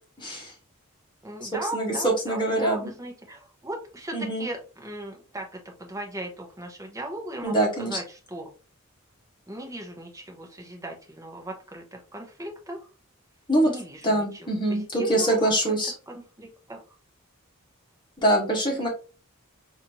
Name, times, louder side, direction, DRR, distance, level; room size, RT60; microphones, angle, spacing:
voice 1, 0.2-0.5 1.7-2.9 4.1-4.5 7.4-8.0 13.5-13.7 14.0-15.9 18.2-18.9, right 1 dB, 20° left, -1 dB, 1.5 m, -24 dB
voice 2, 1.2-8.5 9.5-12.8 13.6-15.8 16.1-16.8, right 1 dB, 15° right, 1 dB, 1.0 m, -38 dB
4.1 x 2.8 x 2.9 m, 0.34 s
head